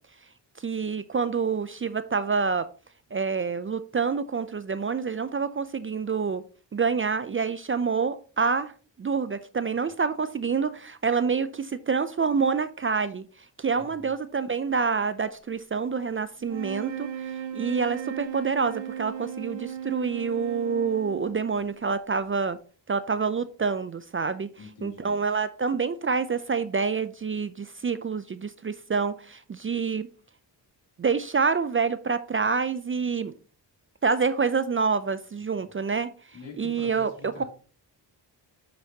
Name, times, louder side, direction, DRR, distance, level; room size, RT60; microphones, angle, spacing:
voice 1, 0.6-2.7 3.1-6.4 6.7-8.7 9.0-13.2 13.6-17.1 17.5-22.6 22.9-24.5 24.8-30.1 31.0-33.3 34.0-36.1 36.6-37.4, right 5 dB, 30° right, 0.4 m, -27 dB
voice 2, 13.7-14.1 24.6-25.2 36.3-37.4, left 4 dB, 75° left, 3.0 m, -45 dB
sound 1, 16.4-21.9, right 9 dB, 75° right, 1.0 m, -36 dB
7.3 x 6.3 x 2.8 m
cardioid pair, 80°, 45 cm